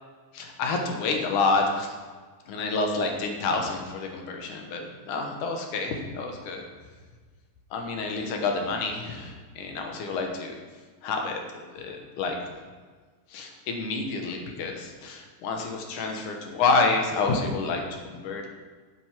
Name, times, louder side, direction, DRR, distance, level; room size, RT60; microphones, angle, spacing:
voice 1, 0.3-2.0 2.5-6.6 7.7-10.6 11.0-12.4 13.3-18.5, left 3 dB, 70° left, 3 dB, 2.5 m, -28 dB
9.1 x 7.8 x 6.1 m, 1.5 s
omnidirectional pair, 3.9 m